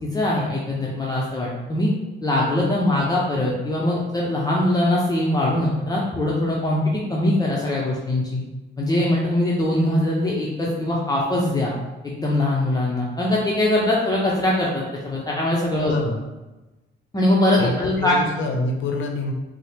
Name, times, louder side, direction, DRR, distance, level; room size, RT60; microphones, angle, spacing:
voice 1, 0.0-1.9 2.2-8.4 8.8-11.7 12.0-15.9 17.1-18.2, left 1 dB, 20° left, -4 dB, 0.6 m, -22 dB
voice 2, 15.8-16.2 17.6-19.3, left 2 dB, 75° left, 3 dB, 0.6 m, -26 dB
4.3 x 2.0 x 3.3 m, 1.1 s
cardioid pair, 90°, 20 cm